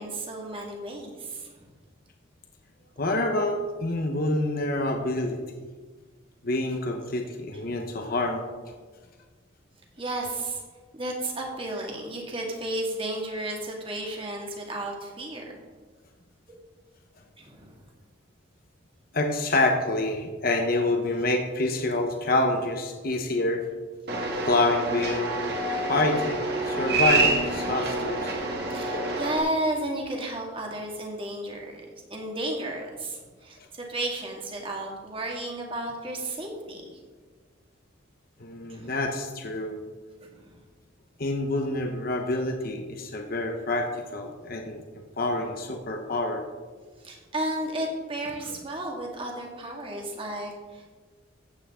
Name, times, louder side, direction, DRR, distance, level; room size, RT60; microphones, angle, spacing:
voice 1, 0.0-1.7 7.5-7.7 10.0-10.6 10.9-15.6 17.4-17.7 28.6-31.8 32.1-36.8 38.7-39.0 40.2-40.6 47.0-50.9, right 1 dB, 30° right, 0 dB, 2.0 m, -33 dB
voice 2, 3.0-5.4 6.4-8.4 19.1-23.7 24.4-25.4 25.9-28.3 38.4-39.8 41.2-44.8 45.2-46.5, left 2 dB, 50° left, 3 dB, 1.1 m, -27 dB
sound 1, 24.1-29.4, right 2 dB, 55° right, 2.0 m, -27 dB
15.0 x 8.5 x 3.7 m, 1.4 s
head